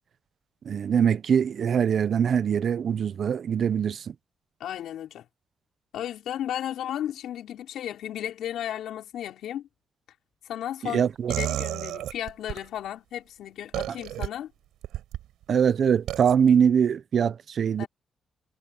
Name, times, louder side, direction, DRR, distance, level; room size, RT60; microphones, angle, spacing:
voice 1, 0.6-4.1 10.8-11.3 15.5-17.8, right 7 dB, 65° right, 0.9 m, -23 dB
voice 2, 4.6-5.2 5.9-9.7 10.4-14.5 17.8-17.9, left 11 dB, 80° left, 5.5 m, -34 dB
sound 1, 11.3-12.6 13.7-14.3 14.8-15.2 16.1-16.3, right 13 dB, 90° right, 5.2 m, -31 dB
supercardioid pair, 60°, 0 cm